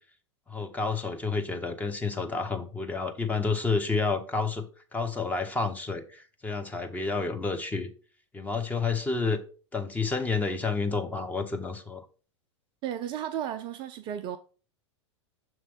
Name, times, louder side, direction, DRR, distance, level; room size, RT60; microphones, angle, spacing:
voice 1, 0.5-4.6 4.9-7.9 8.3-9.4 9.7-12.0, left 4 dB, 10° left, 0.8 m, -30 dB
voice 2, 12.8-14.4, right 10 dB, 30° right, 0.4 m, -34 dB
6.8 x 3.1 x 5.1 m
figure-of-eight pair, 95°, 16 cm